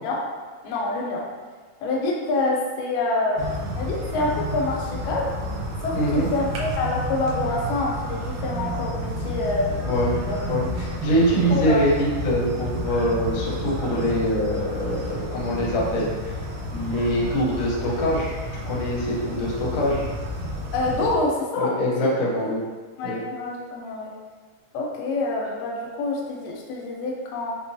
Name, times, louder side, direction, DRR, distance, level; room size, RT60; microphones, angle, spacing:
voice 1, 0.6-1.2 1.8-5.3 5.8-10.4 11.5-11.9 20.7-21.7 22.0-22.1 22.4-22.5 23.0-24.1 24.7-27.5, left 2 dB, 90° left, -1 dB, 2.3 m, -26 dB
sound 1, 3.4-21.1, equal, 75° right, 1.9 m, -31 dB
voice 2, 5.9-6.3 9.8-10.1 10.5-16.3 16.7-18.3 18.7-20.0 21.6-22.6 23.0-23.2, equal, 70° left, -5 dB, 1.4 m, -24 dB
5.8 x 2.2 x 2.7 m, 1.4 s
omnidirectional pair, 3.8 m